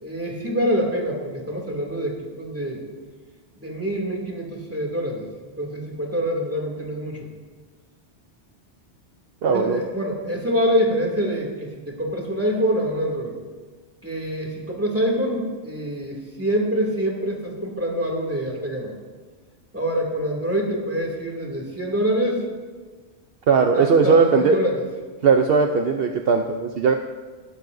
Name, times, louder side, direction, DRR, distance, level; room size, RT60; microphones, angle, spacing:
voice 1, 0.0-2.8 3.6-5.3 5.6-7.3 9.4-13.4 14.0-18.9 19.7-22.5 23.7-24.8, equal, 10° right, -2 dB, 2.5 m, -25 dB
voice 2, 9.4-9.8 23.5-24.6 25.2-26.9, right 5 dB, 65° right, 4 dB, 0.9 m, -18 dB
20.5 x 12.0 x 2.6 m, 1.5 s
omnidirectional pair, 1.1 m